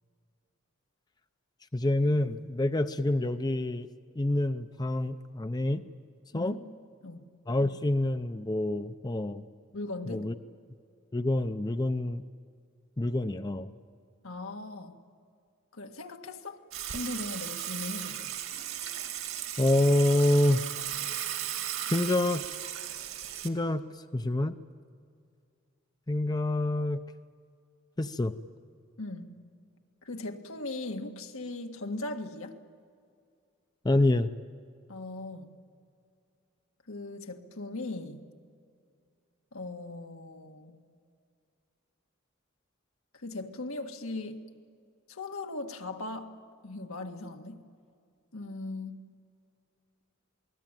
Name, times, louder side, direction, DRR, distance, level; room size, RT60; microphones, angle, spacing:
voice 1, 1.7-3.9 4.2-5.8 6.3-6.6 7.5-9.4 10.1-10.3 11.1-12.2 13.0-13.7 19.6-20.6 21.9-22.4 23.4-23.9 24.1-24.6 26.1-27.1 28.0-28.3 33.8-34.3, left 1 dB, 20° left, 10 dB, 0.6 m, -27 dB
voice 2, 9.7-10.3 14.2-15.0 15.7-16.6 16.9-18.4 29.0-29.4 30.0-32.6 34.9-35.5 36.9-38.3 39.5-40.8 43.1-44.5 45.1-46.4 46.6-47.6 48.3-49.0, left 2 dB, 85° left, 4 dB, 1.9 m, -39 dB
Water / Water tap faucet / Sink (filling or washing), 16.7-23.5, right 11 dB, 75° right, 2.4 m, -36 dB
27.5 x 20.0 x 9.1 m, 2.3 s
head